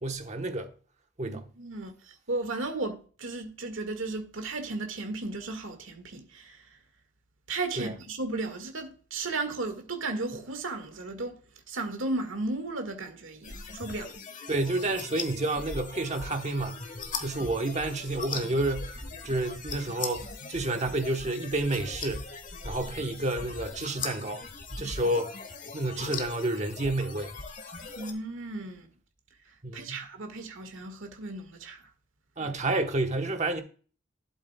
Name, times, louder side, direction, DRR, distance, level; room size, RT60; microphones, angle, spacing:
voice 1, 0.0-0.7 1.2-1.4 7.8-7.9 14.5-16.9 17.2-22.3 22.6-24.4 24.8-25.3 25.7-27.3 29.6-30.0 32.4-33.6, right 2 dB, 35° right, 1.1 m, -30 dB
voice 2, 1.2-6.7 7.5-11.4 11.7-14.1 28.0-28.9 29.7-31.8, right 2 dB, 75° right, 1.9 m, -35 dB
sound 1, 13.4-28.1, left 4 dB, 40° left, 1.3 m, -40 dB
11.5 x 8.1 x 2.3 m
head